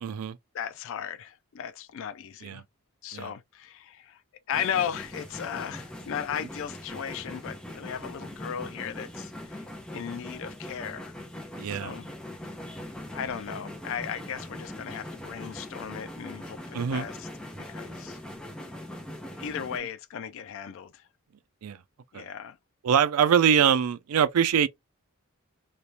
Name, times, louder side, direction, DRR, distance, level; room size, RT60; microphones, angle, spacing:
voice 1, 0.0-0.4 2.4-2.6 3.1-3.3 11.6-11.9 16.7-17.1 21.6-21.8 22.1-22.2 22.8-24.7, right 8 dB, 75° right, 0.4 m, -23 dB
voice 2, 0.5-2.6 3.0-4.2 4.5-9.7 9.9-11.1 11.6-12.1 12.6-17.3 17.7-18.2 19.4-21.1 22.1-22.6, left 8 dB, 60° left, 0.3 m, -36 dB
Steam engine speeding up, 4.5-19.8, left 1 dB, 5° left, 0.9 m, -41 dB
3.3 x 2.9 x 2.7 m
head